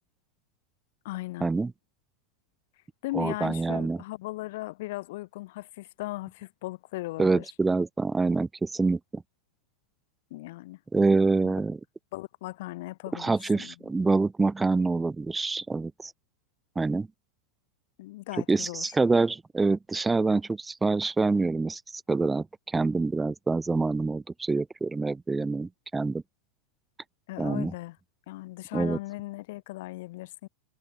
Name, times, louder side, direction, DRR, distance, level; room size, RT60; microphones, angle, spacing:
voice 1, 1.0-1.5 3.0-7.5 10.3-10.8 11.4-11.5 12.1-13.7 18.0-18.9 27.3-28.0 28.3-30.5, left 19 dB, 55° left, 2.6 m, -37 dB
voice 2, 3.1-4.0 7.2-9.2 10.9-11.8 13.2-16.1 16.8-17.1 18.5-26.2 27.4-27.7 28.7-29.0, right 3 dB, 10° right, 0.6 m, -26 dB
supercardioid pair, 165°, 0 cm